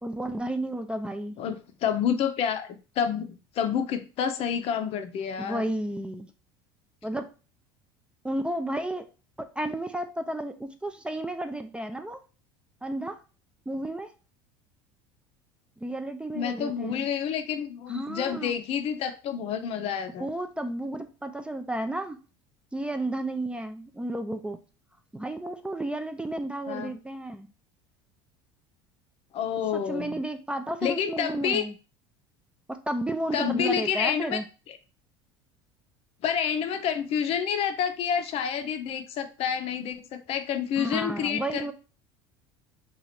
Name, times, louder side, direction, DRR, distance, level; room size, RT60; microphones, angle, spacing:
voice 1, 0.0-1.4 5.4-6.3 7.0-7.3 8.2-9.1 9.4-12.2 12.8-13.2 13.7-14.1 15.8-17.1 17.9-18.5 20.2-22.2 22.7-24.6 25.1-27.5 29.7-31.7 32.7-34.4 40.8-41.7, right 1 dB, 10° right, 7 dB, 0.4 m, -32 dB
voice 2, 1.4-5.7 16.3-20.3 26.7-26.9 29.3-30.2 30.8-31.6 33.3-34.4 34.7-34.8 36.2-41.7, left 8 dB, 50° left, 9 dB, 0.6 m, -29 dB
2.9 x 2.4 x 4.1 m, 0.34 s
supercardioid pair, 95°, 12 cm